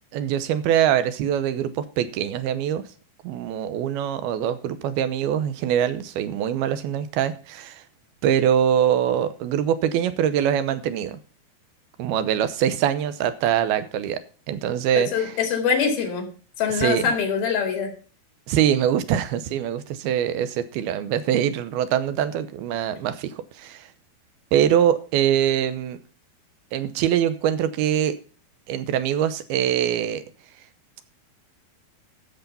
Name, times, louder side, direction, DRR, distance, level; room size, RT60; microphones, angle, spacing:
voice 1, 0.1-2.8 3.2-7.8 8.2-11.2 12.0-14.2 14.5-15.4 16.7-17.2 18.5-23.9 24.5-26.0 26.7-28.2 28.7-30.2, right 10 dB, 90° right, 2.8 m, -23 dB
voice 2, 15.0-16.3 16.6-17.9, left 6 dB, 75° left, 4.2 m, -24 dB
13.0 x 7.1 x 5.6 m
omnidirectional pair, 4.4 m